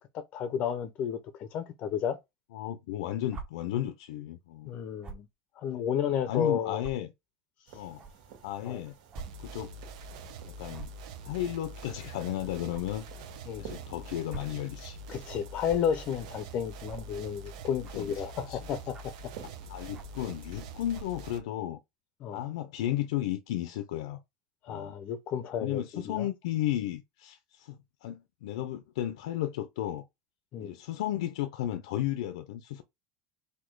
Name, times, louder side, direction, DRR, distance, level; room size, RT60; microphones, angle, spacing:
voice 1, 0.0-2.2 4.7-5.3 5.6-6.8 7.7-7.8 8.6-8.8 13.5-13.7 15.1-19.1 22.2-22.4 24.6-26.3 30.5-30.7, left 8 dB, 40° left, 0.5 m, -32 dB
voice 2, 2.5-4.7 6.1-7.1 7.7-8.0 8.4-8.9 9.4-9.8 10.4-10.9 11.2-13.1 13.6-15.0 17.9-18.6 19.7-21.8 22.3-24.2 24.7-24.9 25.6-27.8 28.0-30.1 30.6-32.8, left 13 dB, 90° left, 0.6 m, -34 dB
sound 1, 3.3-3.5 5.0-5.3 6.0-6.1 6.8-6.9 8.0-8.1 9.1-9.3 9.6-9.7 10.7-11.0 12.7-12.8 14.1-14.6 15.7-15.8 16.8-17.1 17.8-18.1 18.9-19.2 19.9-20.2 20.9-21.2, right 4 dB, 30° right, 1.0 m, -43 dB
sound 2, 7.7-20.9, right 8 dB, 60° right, 1.8 m, -53 dB
sound 3, 9.1-21.4, right 3 dB, 80° right, 0.9 m, -45 dB
4.2 x 2.7 x 4.5 m
supercardioid pair, 150°, 3 cm